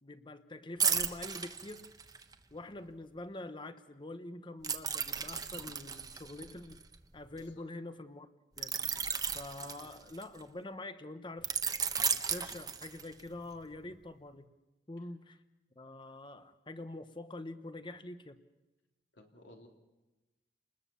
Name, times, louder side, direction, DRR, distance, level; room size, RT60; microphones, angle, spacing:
voice 1, 0.0-1.9 2.5-6.8 7.1-8.3 8.6-9.0 9.3-11.5 12.3-14.5 14.9-15.4 15.8-18.4, left 2 dB, 25° left, 11 dB, 1.1 m, -45 dB
sound 1, 0.8-2.3 4.6-7.4 8.6-10.4 11.4-13.3 13.7-13.9, right 6 dB, 20° right, 1.1 m, -34 dB
voice 2, 19.1-19.7, left 1 dB, 80° left, 2 dB, 3.4 m, -56 dB
30.0 x 20.5 x 7.1 m, 1.1 s
head